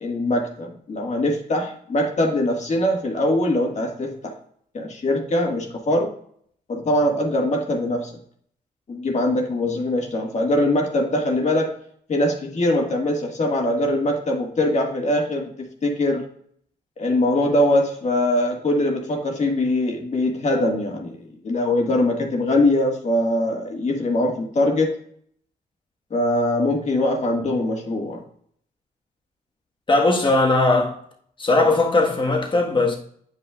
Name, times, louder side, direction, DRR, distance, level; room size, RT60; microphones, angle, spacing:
voice 1, 0.0-4.3 4.7-6.1 6.7-8.2 8.9-11.8 12.1-16.3 17.0-21.2 21.4-25.0 26.1-28.2, left 1 dB, 45° left, 1.8 m, -22 dB
voice 2, 29.9-31.0 31.4-33.0, left 2 dB, 30° left, 1.5 m, -19 dB
8.9 x 5.7 x 2.4 m
cardioid pair, 75°, 16 cm